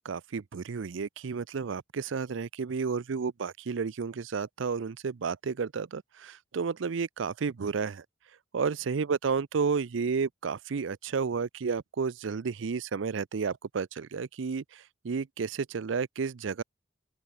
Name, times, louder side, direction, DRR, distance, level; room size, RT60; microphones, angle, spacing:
voice 1, 0.0-8.0 8.5-16.6, right 5 dB, 80° right, 0.5 m, -32 dB
open air
head